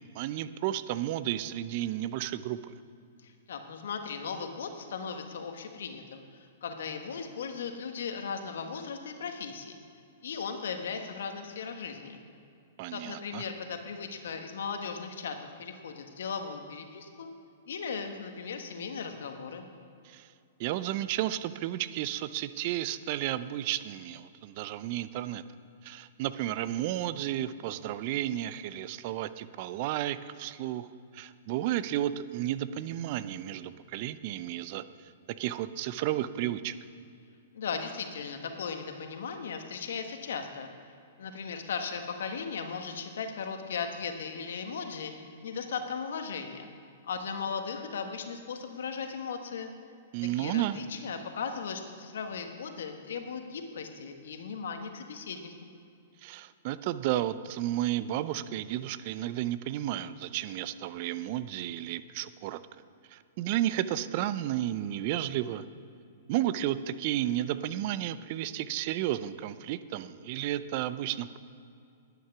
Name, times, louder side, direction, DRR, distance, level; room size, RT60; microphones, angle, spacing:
voice 1, 0.1-2.7 12.8-13.4 20.0-20.3 20.6-25.4 25.8-30.9 31.1-35.1 35.4-36.7 50.1-50.8 56.2-62.6 63.1-65.6 66.3-71.4, right 13 dB, 50° right, 14 dB, 0.5 m, -32 dB
voice 2, 3.2-9.8 10.2-12.2 12.9-17.3 17.7-19.7 37.5-40.7 41.2-45.1 45.4-46.7 47.0-49.7 50.4-55.7, left 6 dB, 70° left, 6 dB, 1.4 m, -37 dB
11.0 x 9.1 x 6.0 m, 2.5 s
hypercardioid pair, 115°, 0 cm